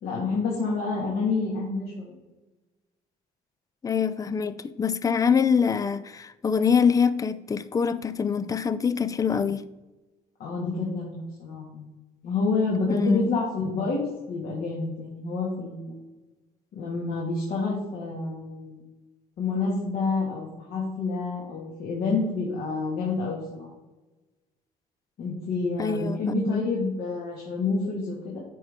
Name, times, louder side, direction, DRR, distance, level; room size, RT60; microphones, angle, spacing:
voice 1, 0.0-2.2 10.4-11.9 12.2-15.9 16.7-18.8 19.4-23.7 25.2-28.4, left 3 dB, 65° left, 2.0 m, -28 dB
voice 2, 3.8-9.6 12.9-13.3 25.8-26.2 26.5-26.6, left 6 dB, 20° left, 0.4 m, -24 dB
8.5 x 5.3 x 3.6 m
cardioid pair, 110°, 17 cm